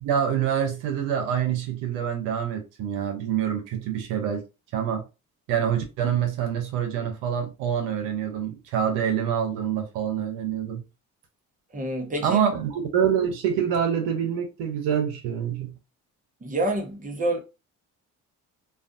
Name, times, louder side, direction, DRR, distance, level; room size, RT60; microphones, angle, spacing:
voice 1, 0.0-4.4 4.7-5.1 5.5-10.8 12.2-15.8, right 8 dB, 75° right, 0.7 m, -26 dB
voice 2, 11.7-12.4 16.4-17.4, right 1 dB, 20° right, 0.9 m, -27 dB
2.3 x 2.3 x 2.5 m
hypercardioid pair, 55°, 43 cm